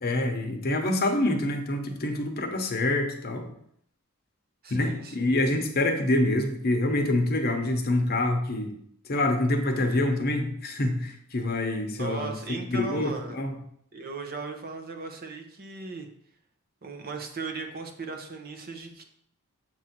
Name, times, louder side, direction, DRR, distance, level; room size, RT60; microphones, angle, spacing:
voice 1, 0.0-3.5 4.7-8.7 9.1-13.5, left 1 dB, 45° left, 4 dB, 0.8 m, -26 dB
voice 2, 4.6-5.2 11.9-13.4 13.9-16.1 16.8-19.0, right 4 dB, 45° right, 4 dB, 0.8 m, -37 dB
7.4 x 2.6 x 5.9 m, 0.67 s
head